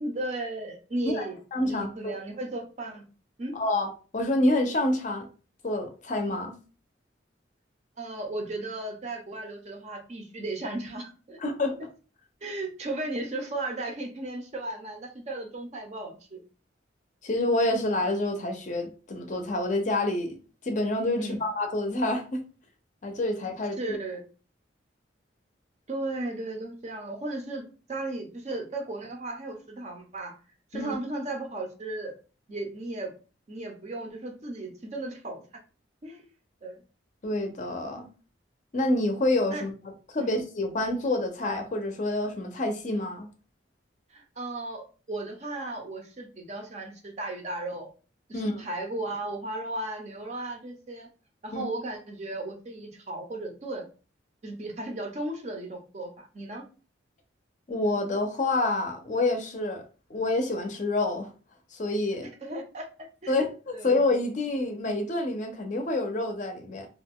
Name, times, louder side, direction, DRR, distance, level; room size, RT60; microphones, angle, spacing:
voice 1, 0.0-1.4 1.6-3.0 3.4-3.6 8.0-11.4 12.4-16.4 21.2-21.4 23.8-24.2 25.9-30.3 30.7-32.2 32.5-33.1 33.5-35.6 36.0-36.3 36.6-36.8 39.5-39.6 40.2-40.3 44.1-47.9 48.3-51.1 51.4-53.8 54.4-56.6 62.4-62.9 63.2-63.3 63.7-63.9, right 2 dB, 35° right, 0.5 m, -35 dB
voice 2, 1.5-2.2 3.5-5.3 5.6-6.5 11.4-11.9 17.2-20.4 20.6-22.4 23.0-24.0 30.7-30.9 37.2-38.0 38.7-39.7 40.1-43.3 48.3-48.6 51.5-51.6 57.7-59.8 60.1-61.3 61.7-62.3 63.3-66.9, left 2 dB, 40° left, 0.5 m, -27 dB
2.4 x 2.2 x 3.5 m
head